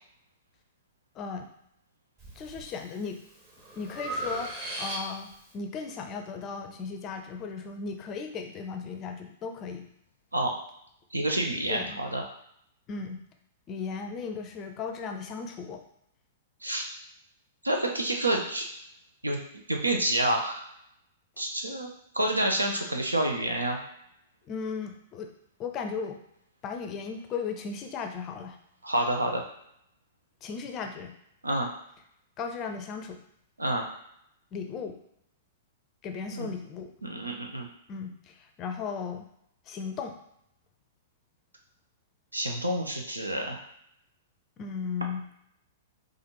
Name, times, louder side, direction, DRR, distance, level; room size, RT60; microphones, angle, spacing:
voice 1, 1.1-1.5 2.4-3.2 3.8-9.9 11.7-12.0 12.9-13.2 13.7-15.8 24.4-25.3 25.6-26.2 26.6-28.6 30.4-31.1 32.4-33.2 34.5-35.0 36.0-36.9 37.9-39.3 39.7-40.1 44.6-45.2, left 5 dB, 30° left, 5 dB, 0.5 m, -36 dB
Breathing, 2.2-2.7 3.2-5.4, right 1 dB, 25° right, 1.1 m, -37 dB
voice 2, 11.1-12.2 16.6-16.8 17.6-18.7 19.2-19.4 19.7-20.7 21.4-21.9 22.1-23.8 28.8-29.4 31.4-31.7 33.6-33.8 36.3-36.5 37.0-37.7 42.3-43.6, right 1 dB, 85° right, 2 dB, 0.6 m, -28 dB
4.0 x 2.5 x 3.1 m, 0.75 s
figure-of-eight pair, 105°, 0 cm